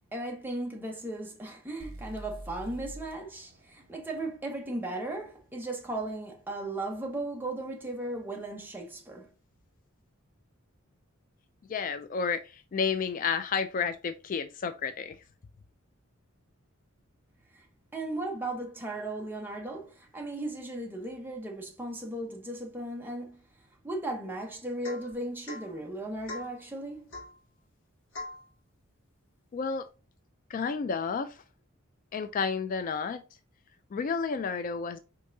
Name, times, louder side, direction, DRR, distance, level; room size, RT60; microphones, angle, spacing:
voice 1, 0.1-9.3 17.5-17.6 17.9-23.4 23.8-27.1, right 1 dB, 10° right, 1.0 m, -36 dB
sound 1, 1.8-5.7, right 1 dB, 45° right, 0.9 m, -47 dB
voice 2, 11.7-15.2 29.5-29.9 30.5-31.4 32.1-33.2 33.9-35.0, left 5 dB, 40° left, 0.3 m, -31 dB
Domestic sounds home sounds / Chink clink / Drip, 24.8-25.1 25.5-25.7 26.3-26.6 27.1-27.4 28.1-28.4, left 2 dB, 60° left, 2.0 m, -41 dB
5.3 x 3.6 x 2.6 m
head